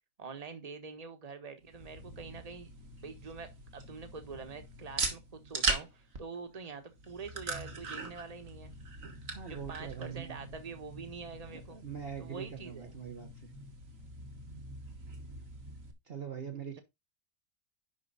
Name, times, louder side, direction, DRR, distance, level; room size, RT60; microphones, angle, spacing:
voice 1, 0.2-2.7 3.0-8.7 9.4-11.8 12.2-13.0, right 5 dB, 25° right, 1.4 m, -45 dB
sound 1, 1.6-15.9, right 3 dB, 65° right, 2.0 m, -41 dB
voice 2, 9.3-10.4 11.5-13.5 16.0-16.8, right 7 dB, 45° right, 1.3 m, -43 dB
11.0 x 4.8 x 4.0 m
omnidirectional pair, 1.5 m